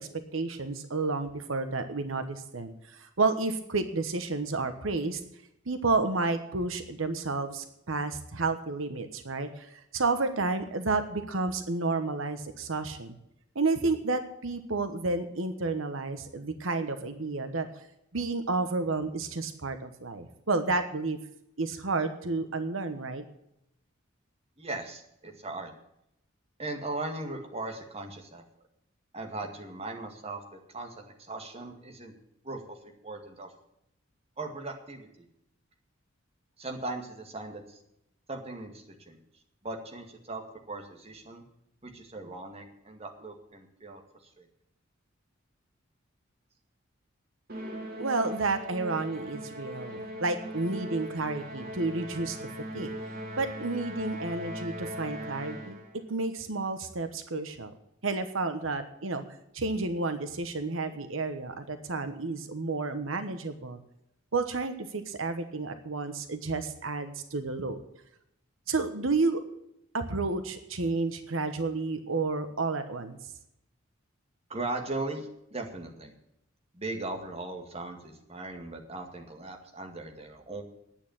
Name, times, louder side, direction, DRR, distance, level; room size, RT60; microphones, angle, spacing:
voice 1, 0.3-5.2 5.7-13.2 13.5-17.9 18.1-21.2 21.6-23.2 48.0-52.4 52.7-52.9 53.4-55.8 56.1-57.7 58.0-59.2 59.5-63.8 64.3-67.8 68.7-69.4 69.9-73.2, right 3 dB, 85° right, 9 dB, 1.2 m, -31 dB
voice 2, 24.6-25.7 26.6-28.4 29.1-32.1 32.4-33.5 34.4-35.3 36.6-37.8 38.3-39.2 39.6-40.4 40.7-41.4 41.8-44.0 44.4-44.5 74.5-76.2 76.7-80.6, right 2 dB, 30° right, 2 dB, 2.1 m, -38 dB
Musical instrument, 47.5-56.0, equal, 50° right, 2.9 m, -39 dB
10.5 x 8.7 x 8.8 m, 0.79 s
head